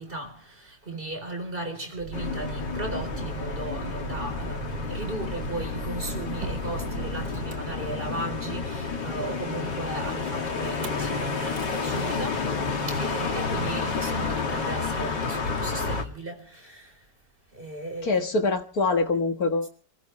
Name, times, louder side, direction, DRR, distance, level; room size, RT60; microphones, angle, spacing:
voice 1, 0.0-17.1 17.5-18.2, right 2 dB, 30° right, 4.2 m, -36 dB
Motor vehicle (road), 2.0-8.4 10.6-11.1 11.4-11.8, right 2 dB, 80° right, 2.6 m, -37 dB
sound 1, 2.1-16.0, left 4 dB, 80° left, 3.0 m, -30 dB
voice 2, 18.0-19.7, left 3 dB, 60° left, 1.9 m, -24 dB
28.0 x 16.0 x 3.2 m
omnidirectional pair, 1.9 m